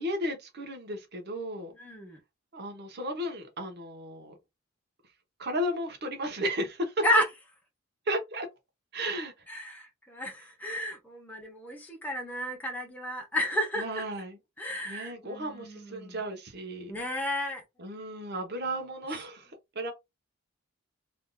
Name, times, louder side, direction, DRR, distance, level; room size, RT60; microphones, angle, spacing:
voice 1, 0.0-1.7 2.5-4.3 5.4-7.0 8.1-8.5 8.9-9.3 13.8-14.4 14.8-17.2 17.8-19.9, equal, 50° right, 0.8 m, -34 dB
voice 2, 1.8-2.2 7.0-7.2 9.5-14.0 14.6-16.2 16.9-17.6, left 1 dB, 10° left, 0.8 m, -32 dB
3.4 x 2.5 x 2.2 m
head